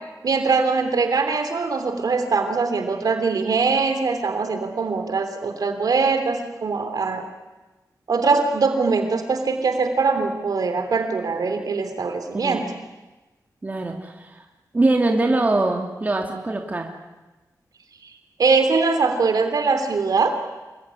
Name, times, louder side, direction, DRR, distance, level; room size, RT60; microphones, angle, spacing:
voice 1, 0.2-7.3 8.1-12.6 18.0-18.1 18.4-20.4, right 4 dB, 70° right, 7 dB, 3.2 m, -22 dB
voice 2, 13.6-14.4 14.7-16.9, right 2 dB, 25° right, 2 dB, 2.8 m, -22 dB
26.5 x 23.0 x 9.9 m, 1.1 s
wide cardioid pair, 175°, 7 cm